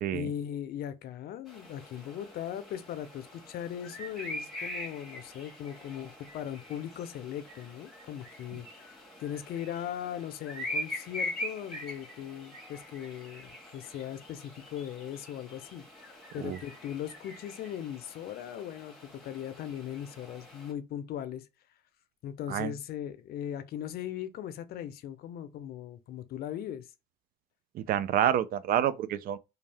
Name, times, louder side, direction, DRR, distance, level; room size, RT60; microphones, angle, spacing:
voice 1, 0.1-21.5 22.2-26.9, left 10 dB, 65° left, 0.5 m, -39 dB
sound 1, 1.5-20.7, left 1 dB, ahead, 1.3 m, -43 dB
voice 2, 27.8-29.4, right 10 dB, 60° right, 0.4 m, -28 dB
2.6 x 2.3 x 3.3 m
cardioid pair, 110°, 17 cm